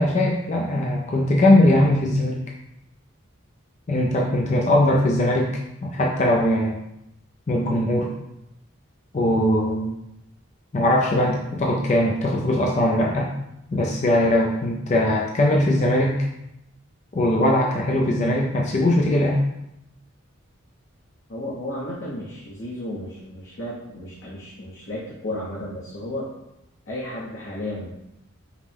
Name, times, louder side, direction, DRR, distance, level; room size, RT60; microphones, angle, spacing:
voice 1, 0.0-2.4 3.9-5.5 5.8-6.7 7.5-8.1 9.1-9.9 10.7-13.3 13.7-16.2 17.1-19.4, left 1 dB, 35° left, -2 dB, 0.4 m, -20 dB
voice 2, 21.3-26.3 26.9-27.9, left 1 dB, 65° left, -7 dB, 0.8 m, -33 dB
5.0 x 2.1 x 3.3 m, 0.86 s
head